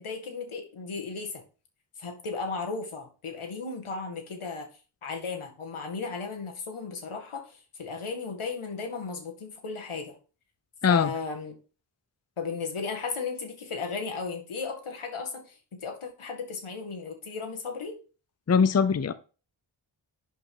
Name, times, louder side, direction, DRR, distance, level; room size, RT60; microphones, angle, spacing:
voice 1, 0.0-1.4 2.0-4.7 5.0-10.2 10.9-11.6 12.4-18.0, left 4 dB, 85° left, 3 dB, 2.0 m, -35 dB
voice 2, 18.5-19.1, left 6 dB, 35° left, 13 dB, 0.6 m, -21 dB
11.0 x 5.2 x 3.8 m, 0.36 s
wide cardioid pair, 85°, 48 cm